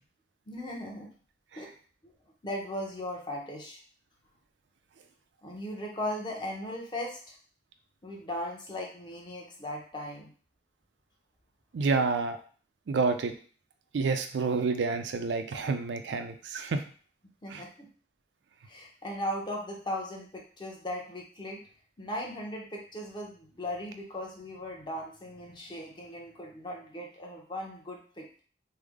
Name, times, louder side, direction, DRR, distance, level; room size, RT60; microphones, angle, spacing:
voice 1, 0.5-1.1 1.5-1.7 2.0-2.1 2.4-3.8 5.4-7.4 8.0-10.3 17.4-17.9 18.6-21.6 22.0-28.4, left 1 dB, 25° left, -1 dB, 0.7 m, -38 dB
voice 2, 11.7-12.4 12.9-13.3 13.9-16.8 17.5-17.6, right 4 dB, 85° right, 8 dB, 0.4 m, -28 dB
3.3 x 2.0 x 3.5 m, 0.43 s
head